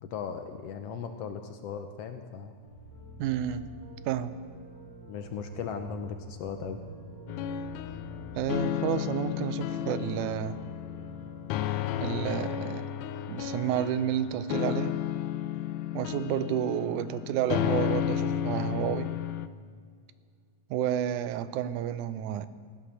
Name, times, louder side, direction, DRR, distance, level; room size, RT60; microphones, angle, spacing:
voice 1, 0.0-2.5 5.1-6.8, left 6 dB, 70° left, 7 dB, 1.6 m, -37 dB
sound 1, 2.6-12.2, right 2 dB, 60° right, 3.9 m, -48 dB
voice 2, 3.2-3.7 4.1-4.3 8.4-10.6 12.0-12.9 13.3-15.0 15.9-19.1 20.7-22.5, right 10 dB, 85° right, 14 dB, 2.1 m, -30 dB
sound 2, 7.3-19.5, left 10 dB, 90° left, 2.1 m, -32 dB
16.0 x 11.5 x 6.7 m, 2.1 s
omnidirectional pair, 3.4 m